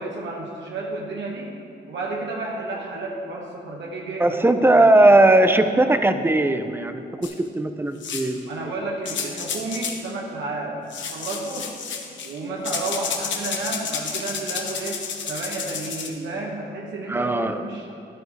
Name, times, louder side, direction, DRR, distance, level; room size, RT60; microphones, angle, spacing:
voice 1, 0.0-1.5 1.9-5.2 8.5-11.8 12.2-18.0, right 2 dB, 75° right, -2 dB, 1.7 m, -32 dB
voice 2, 4.2-8.5 17.1-17.6, right 2 dB, 10° right, 8 dB, 0.6 m, -18 dB
sound 1, 7.2-7.3 8.0-8.4 9.1-10.0 10.9-12.4 12.6-16.1, left 6 dB, 80° left, 1.2 m, -31 dB
12.5 x 11.5 x 3.4 m, 2.8 s
cardioid pair, 115°, 19 cm